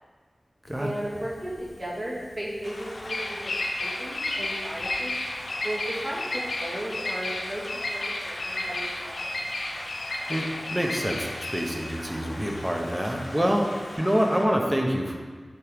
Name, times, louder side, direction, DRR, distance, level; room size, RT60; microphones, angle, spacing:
Bird vocalization bird call bird song, 0.7-14.0, left 2 dB, 90° left, 0.6 m, -33 dB
voice 1, 0.8-1.5 1.8-3.4 3.8-5.1 5.6-7.6 7.9-9.3 13.9-14.1, right 1 dB, 40° right, -6 dB, 1.7 m, -35 dB
sound 1, 2.6-14.5, left 1 dB, 55° left, 0.8 m, -41 dB
voice 2, 10.0-11.3 11.5-13.7 14.0-15.2, equal, 10° right, 1 dB, 0.7 m, -26 dB
7.4 x 3.7 x 3.5 m, 1.5 s
wide cardioid pair, 80°, 0 cm